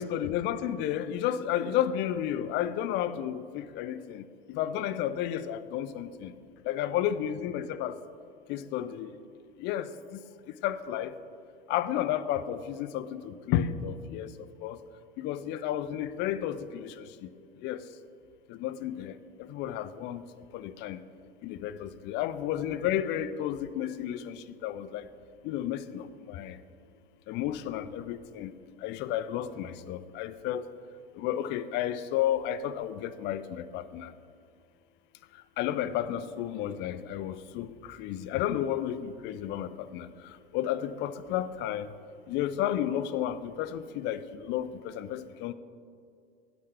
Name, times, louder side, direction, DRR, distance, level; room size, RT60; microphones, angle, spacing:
voice 1, 0.0-6.3 6.7-8.0 8.5-9.2 9.6-10.2 10.6-11.2 11.7-14.8 15.2-17.3 17.6-17.8 18.5-20.2 20.5-21.0 21.4-25.1 25.4-26.6 27.3-28.5 28.8-30.7 31.1-34.1 35.6-41.9 42.3-45.5, left 11 dB, 35° left, 14 dB, 0.4 m, -32 dB
9.7 x 8.4 x 3.4 m, 2.3 s
hypercardioid pair, 85°, 31 cm